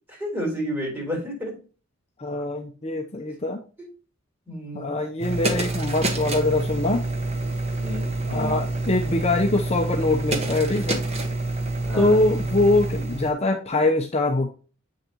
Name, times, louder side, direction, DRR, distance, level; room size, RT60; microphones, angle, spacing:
voice 1, 0.1-1.6 3.8-3.9 4.5-4.9 6.7-6.8 7.7-8.6 11.8-12.2, equal, 10° right, -2 dB, 4.0 m, -31 dB
voice 2, 2.2-3.6 4.7-7.0 8.3-11.0 12.0-14.5, left 2 dB, 30° left, 2 dB, 0.7 m, -23 dB
sound 1, 5.2-13.3, right 2 dB, 30° right, 1.3 m, -27 dB
8.1 x 6.4 x 2.9 m, 0.36 s
head